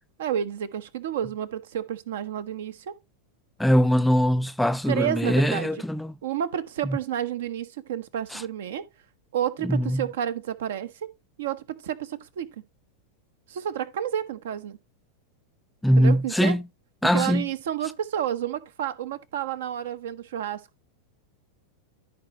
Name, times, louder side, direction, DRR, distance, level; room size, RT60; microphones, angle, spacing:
voice 1, 0.2-2.9 4.9-5.7 6.2-8.8 9.3-11.1 11.4-12.6 13.5-14.8 16.0-16.6 17.1-20.6, right 10 dB, 60° right, 0.9 m, -30 dB
voice 2, 3.6-6.1 6.8-7.0 8.3-8.4 9.6-10.0 15.8-16.6 17.0-17.5, equal, 5° left, 0.4 m, -22 dB
13.5 x 4.9 x 2.9 m
figure-of-eight pair, 90°, 0 cm